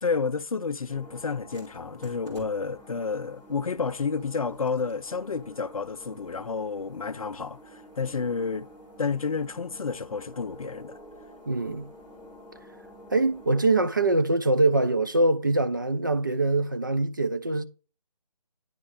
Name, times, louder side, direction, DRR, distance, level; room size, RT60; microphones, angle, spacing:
voice 1, 0.0-8.7 9.0-11.0, left 5 dB, 60° left, 0.5 m, -30 dB
sound 1, 0.9-13.7, equal, 15° right, 2.0 m, -49 dB
voice 2, 11.5-11.9 13.1-17.6, right 2 dB, 30° right, 0.4 m, -23 dB
9.6 x 3.5 x 3.2 m
figure-of-eight pair, 155°, 21 cm